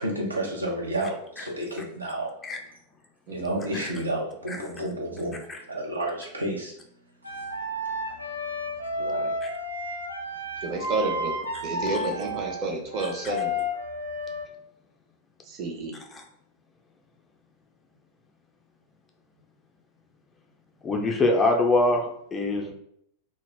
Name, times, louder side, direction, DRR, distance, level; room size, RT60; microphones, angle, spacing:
voice 1, 0.0-2.3 3.3-5.4 5.7-6.7 7.3-7.4, right 1 dB, 80° right, -1 dB, 0.6 m, -30 dB
voice 2, 3.3-3.8 9.0-9.3 10.6-11.3 11.6-13.6 15.5-16.0, right 2 dB, 35° right, 1 dB, 0.6 m, -31 dB
sound 1, 7.2-14.5, left 1 dB, 90° left, 0.4 m, -32 dB
voice 3, 20.8-22.7, left 2 dB, 20° left, 3 dB, 0.4 m, -23 dB
2.1 x 2.0 x 3.3 m, 0.71 s
figure-of-eight pair, 90°, 0 cm